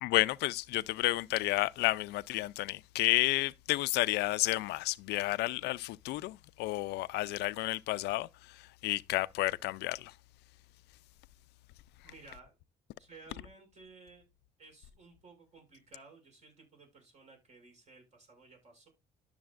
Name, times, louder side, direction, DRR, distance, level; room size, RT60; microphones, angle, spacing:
voice 1, 0.0-10.1, left 18 dB, 80° left, 0.4 m, -31 dB
voice 2, 12.0-12.6 13.0-14.2 14.6-18.9, right 3 dB, 40° right, 6.3 m, -56 dB
12.5 x 6.8 x 2.5 m
cardioid pair, 110°, 17 cm